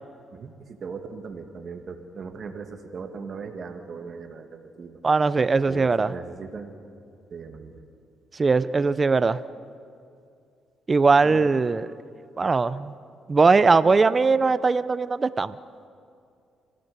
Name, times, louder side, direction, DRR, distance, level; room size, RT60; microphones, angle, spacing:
voice 1, 0.3-5.0 5.7-6.7 7.3-7.8 11.2-11.5, right 5 dB, 50° right, 5 dB, 2.1 m, -38 dB
voice 2, 5.0-6.1 8.3-9.4 10.9-11.9 12.4-12.9 13.3-15.6, right 4 dB, 30° right, 15 dB, 0.7 m, -20 dB
29.0 x 16.5 x 6.9 m, 2.4 s
cardioid pair, 90°, 0 cm